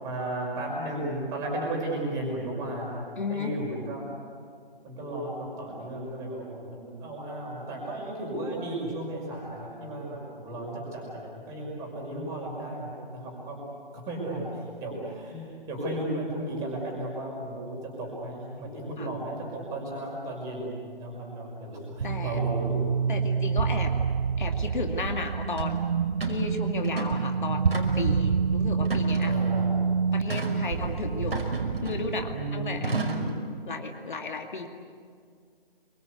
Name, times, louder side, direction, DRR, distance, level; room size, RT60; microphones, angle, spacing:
voice 1, 0.0-4.1 4.8-13.6 13.9-22.8 28.0-28.1 29.2-29.8 32.3-33.4, right 1 dB, 10° right, -2 dB, 5.9 m, -34 dB
voice 2, 3.2-3.5 14.5-14.7 19.0-19.1 22.0-22.4 23.1-23.9 24.4-25.8 26.2-29.3 30.1-31.4 31.8-32.9 33.6-34.7, left 4 dB, 55° left, 3 dB, 2.4 m, -34 dB
sound 1, 22.0-33.3, right 6 dB, 55° right, 0.6 m, -27 dB
sound 2, 25.6-25.7 26.2-26.4 26.8-27.3 27.7-28.2 28.8-29.5 30.3-30.6 31.3-32.2 32.8-33.3, right 3 dB, 80° right, 5.5 m, -33 dB
28.0 x 24.5 x 8.3 m, 2.1 s
hypercardioid pair, 165°, 30 cm